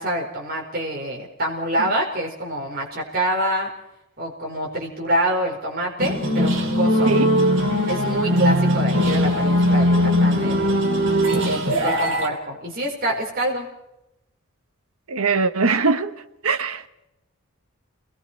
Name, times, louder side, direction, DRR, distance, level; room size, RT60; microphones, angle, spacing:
voice 1, 0.0-3.7 4.2-7.1 7.9-10.7 11.4-13.7, right 1 dB, 45° right, 4.6 m, -26 dB
sound 1, 6.0-12.3, equal, 60° right, 3.6 m, -20 dB
voice 2, 8.3-8.6 15.1-16.1 16.4-16.9, right 4 dB, 85° right, 1.2 m, -21 dB
30.0 x 21.0 x 4.6 m
head